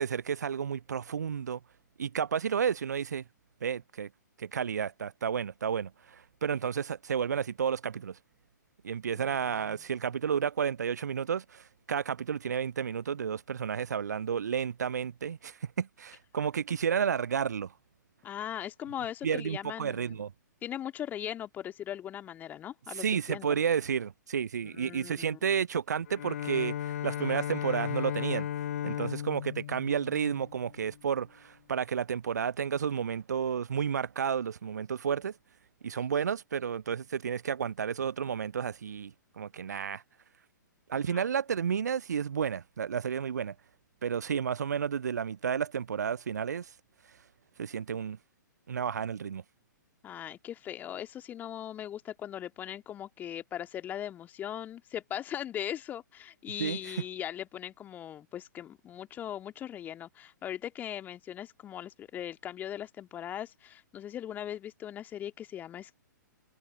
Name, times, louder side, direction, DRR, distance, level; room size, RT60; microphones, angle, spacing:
voice 1, 0.0-1.6 2.0-3.2 3.6-4.1 4.4-8.2 8.8-17.7 19.2-20.3 22.9-28.5 28.8-35.3 35.8-40.0 40.9-43.5 44.0-46.7 47.6-48.2 48.7-49.4 56.6-57.0, right 7 dB, 60° right, 0.6 m, -31 dB
voice 2, 18.2-20.2 20.6-23.6 24.7-25.4 41.1-41.2 50.0-66.0, left 10 dB, 15° left, 2.1 m, -39 dB
Bowed string instrument, 26.1-31.0, left 10 dB, 50° left, 0.6 m, -36 dB
figure-of-eight pair, 120°, 10 cm